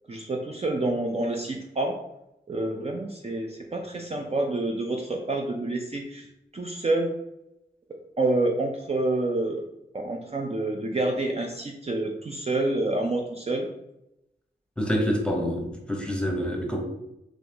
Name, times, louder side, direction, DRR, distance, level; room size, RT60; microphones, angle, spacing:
voice 1, 0.1-1.9 2.5-6.2 6.5-7.1 8.2-9.6 9.9-13.7, right 2 dB, 35° right, 1 dB, 0.5 m, -28 dB
voice 2, 14.8-16.8, equal, 5° left, 1 dB, 1.0 m, -27 dB
4.0 x 3.0 x 2.9 m, 0.86 s
cardioid pair, 45°, 19 cm